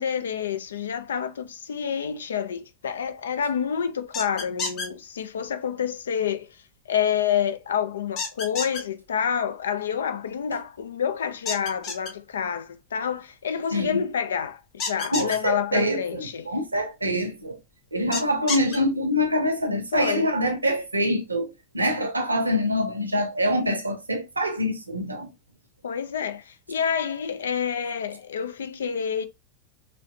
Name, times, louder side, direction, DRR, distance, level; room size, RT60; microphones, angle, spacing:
voice 1, 0.0-6.6 6.9-16.5 19.9-20.3 25.8-29.2, left 8 dB, 65° left, 0.4 m, -28 dB
sound 1, 4.1-4.9 8.2-8.8 11.5-12.1 14.8-15.4 18.1-18.8, left 4 dB, 40° left, 1.4 m, -29 dB
voice 2, 15.1-17.6 17.9-21.5 21.7-25.3, equal, 80° right, 0.8 m, -25 dB
3.2 x 2.8 x 2.6 m
figure-of-eight pair, 90°, 0 cm